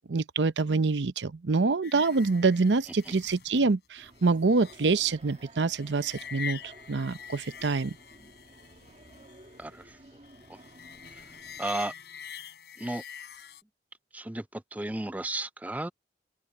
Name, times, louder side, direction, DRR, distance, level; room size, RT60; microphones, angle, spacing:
voice 1, 0.1-8.0, right 3 dB, 85° right, 0.7 m, -26 dB
sound 1, 1.8-13.6, left 7 dB, 70° left, 4.4 m, -45 dB
sound 2, 4.0-11.6, right 1 dB, 40° right, 2.8 m, -54 dB
voice 2, 9.6-10.0 10.5-10.6 11.1-11.3 11.6-11.9 12.8-13.0 14.1-15.9, right 1 dB, 10° right, 0.4 m, -34 dB
open air
head